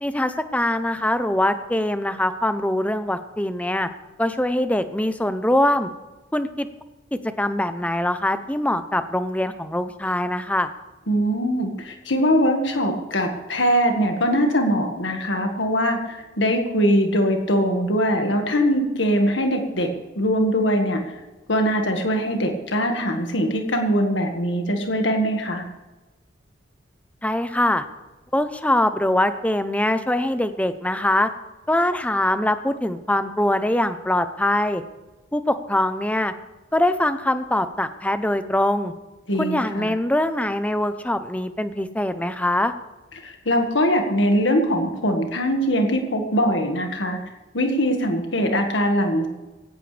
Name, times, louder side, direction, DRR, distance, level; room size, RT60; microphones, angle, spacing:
voice 1, 0.0-3.9 4.2-5.9 6.3-6.7 7.1-10.7 27.2-27.8 28.3-31.3 31.7-34.8 35.3-36.3 36.7-38.9 39.4-42.7, left 1 dB, 5° left, 10 dB, 0.7 m, -23 dB
voice 2, 11.1-19.9 20.2-21.0 21.5-25.6 39.3-39.9 43.2-47.2 47.5-49.3, equal, 70° left, 4 dB, 1.8 m, -22 dB
18.0 x 17.0 x 3.4 m, 1.1 s
head